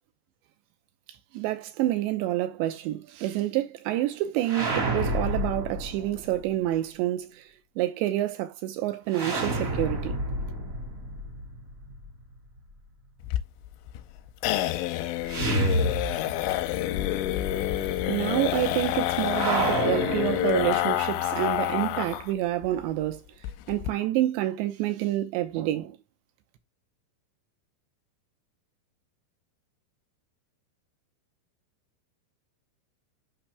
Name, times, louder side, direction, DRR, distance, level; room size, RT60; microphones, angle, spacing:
voice 1, 1.3-7.5 7.8-10.2 18.1-23.2 23.7-26.0, right 14 dB, 80° right, 2.9 m, -28 dB
sound 1, 4.4-6.4 9.1-12.1 15.3-16.7 16.9-17.0 19.3-21.1, right 1 dB, 40° right, 1.1 m, -29 dB
sound 2, 13.2-22.3 22.6-22.7 23.0-23.1 23.4-23.9, left 14 dB, 85° left, 3.0 m, -28 dB
8.8 x 5.8 x 3.4 m
omnidirectional pair, 5.6 m